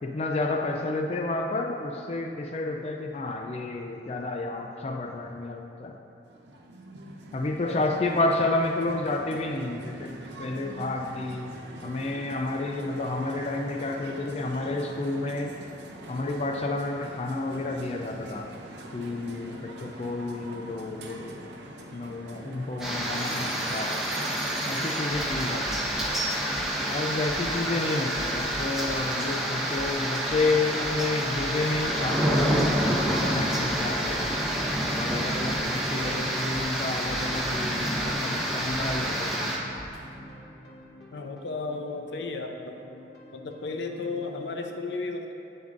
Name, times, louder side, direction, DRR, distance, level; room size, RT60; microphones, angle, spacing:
voice 1, 0.0-5.9 7.3-11.6 11.8-15.5 16.1-18.5 18.9-21.5 21.9-24.0 24.7-25.9 26.9-32.9 33.3-34.3 35.0-39.6, left 2 dB, 35° left, 3 dB, 0.3 m, -30 dB
sound 1, 6.2-25.3, right 1 dB, 80° right, 0.7 m, -43 dB
sound 2, 22.8-39.6, right 1 dB, 5° right, 0.8 m, -28 dB
sound 3, 24.7-44.5, equal, 65° left, 1.2 m, -44 dB
voice 2, 41.1-42.8 43.3-45.3, left 3 dB, 85° left, 4 dB, 0.6 m, -34 dB
8.8 x 6.9 x 2.5 m, 2.9 s
head